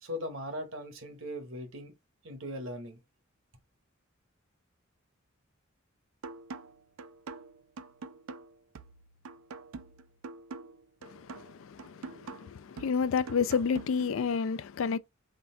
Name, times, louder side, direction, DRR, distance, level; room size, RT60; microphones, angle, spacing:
voice 1, 0.0-1.9 2.2-3.0, left 1 dB, 65° right, 1.1 m, -39 dB
sound 1, 6.2-14.2, right 4 dB, 85° right, 0.4 m, -46 dB
voice 2, 11.0-15.0, left 6 dB, 70° left, 0.4 m, -30 dB
3.8 x 2.3 x 4.4 m
head